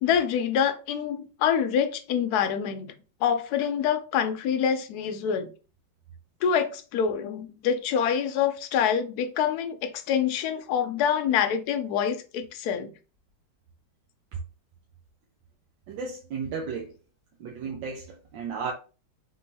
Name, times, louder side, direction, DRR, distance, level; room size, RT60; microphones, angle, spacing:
voice 1, 0.0-2.9 3.2-5.5 6.4-12.9, left 8 dB, 70° left, 1.1 m, -26 dB
voice 2, 15.9-16.9 17.4-18.7, right 5 dB, 85° right, 1.5 m, -34 dB
3.8 x 3.7 x 2.7 m
omnidirectional pair, 2.0 m